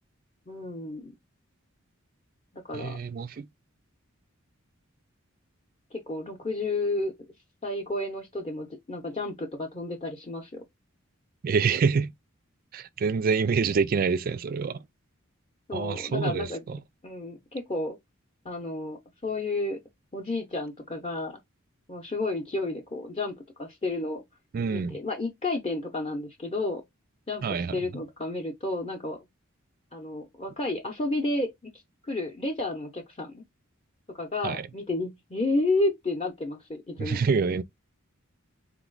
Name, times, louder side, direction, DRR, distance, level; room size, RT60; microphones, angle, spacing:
voice 1, 0.5-1.1 2.5-3.0 5.9-7.1 7.6-10.6 15.7-16.6 17.0-18.0 18.4-19.8 20.1-21.4 21.9-24.2 24.7-26.8 27.3-29.2 29.9-31.5 32.0-33.4 34.1-37.2, left 2 dB, 30° left, 0.7 m, -31 dB
voice 2, 2.7-3.5 11.4-12.1 12.7-14.8 15.7-16.8 24.5-25.0 27.4-27.8 34.4-34.7 37.0-37.6, right 5 dB, 45° right, 0.3 m, -26 dB
3.9 x 3.0 x 3.8 m
head